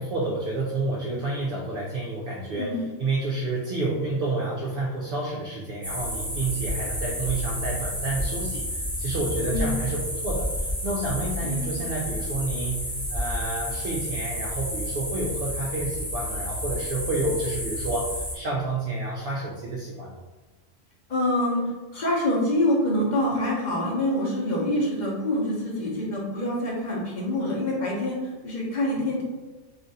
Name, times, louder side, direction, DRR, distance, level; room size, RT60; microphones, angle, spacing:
voice 1, 0.0-20.1, right 2 dB, 60° right, -3 dB, 0.6 m, -29 dB
voice 2, 2.6-2.9 9.4-9.8 11.4-11.8 21.1-29.2, left 1 dB, 45° left, -4 dB, 0.8 m, -26 dB
sound 1, 5.8-18.4, equal, ahead, 0.6 m, -31 dB
2.5 x 2.4 x 4.0 m, 1.2 s
omnidirectional pair, 1.2 m